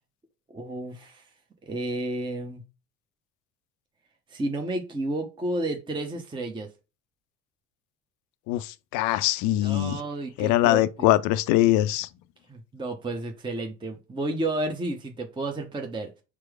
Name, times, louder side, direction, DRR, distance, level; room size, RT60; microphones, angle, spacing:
voice 1, 0.5-1.2 1.6-2.6 4.3-6.7 9.6-11.1 12.5-16.1, right 2 dB, 10° right, 0.8 m, -31 dB
voice 2, 8.5-10.0 10.4-12.1, left 15 dB, 45° left, 0.4 m, -22 dB
4.6 x 2.0 x 4.6 m
figure-of-eight pair, 65°, 45 cm